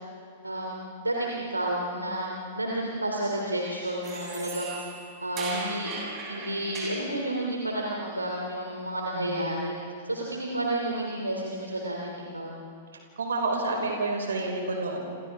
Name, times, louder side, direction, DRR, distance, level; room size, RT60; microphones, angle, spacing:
voice 1, 0.4-4.7 5.2-5.9 6.3-9.7 10.0-12.6, right 1 dB, 85° right, -2 dB, 3.0 m, -31 dB
sound 1, 4.0-7.1, right 3 dB, 25° right, 7.9 m, -38 dB
voice 2, 9.1-9.6 13.2-15.0, right 3 dB, 70° right, 1 dB, 5.5 m, -29 dB
29.0 x 28.5 x 3.7 m, 2.4 s
figure-of-eight pair, 100°, 0 cm